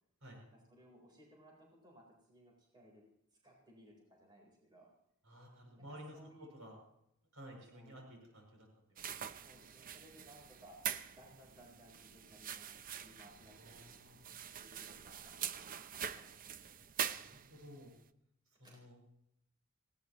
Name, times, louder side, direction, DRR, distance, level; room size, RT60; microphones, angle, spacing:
voice 1, 0.3-3.0 3.4-4.9 5.7-6.5 7.7-7.9 9.3-10.8 11.1-12.7 13.0-13.9 14.6-16.3 18.6-18.8, equal, 20° right, -2 dB, 3.9 m, -61 dB
voice 2, 5.2-6.8 7.3-8.7 13.4-14.4 17.1-17.9 18.6-19.0, equal, 70° right, 1 dB, 6.8 m, -54 dB
sound 1, 9.0-17.8, right 9 dB, 40° right, 0.6 m, -44 dB
19.5 x 17.0 x 3.1 m, 0.77 s
head